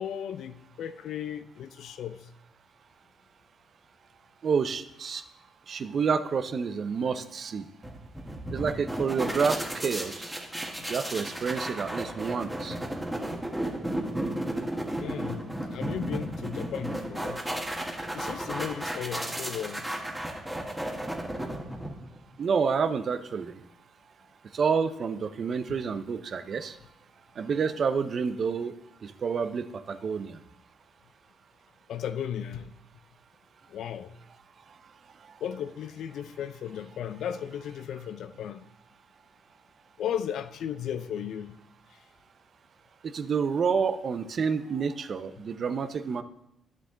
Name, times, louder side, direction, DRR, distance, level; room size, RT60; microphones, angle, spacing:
voice 1, 0.0-2.3 10.8-10.9 12.7-12.8 15.0-17.4 18.1-19.9 25.7-25.8 31.9-32.8 33.7-34.1 35.4-38.7 40.0-41.6, left 9 dB, 70° left, 0.5 m, -35 dB
voice 2, 4.4-5.2 5.7-7.6 8.5-10.3 10.9-12.8 22.4-23.6 24.5-26.7 27.4-28.8 29.0-30.4 43.0-46.2, right 6 dB, 50° right, 0.6 m, -29 dB
sound 1, 7.8-22.2, right 1 dB, 5° right, 1.5 m, -34 dB
11.0 x 7.2 x 3.8 m
cardioid pair, 90°, 0 cm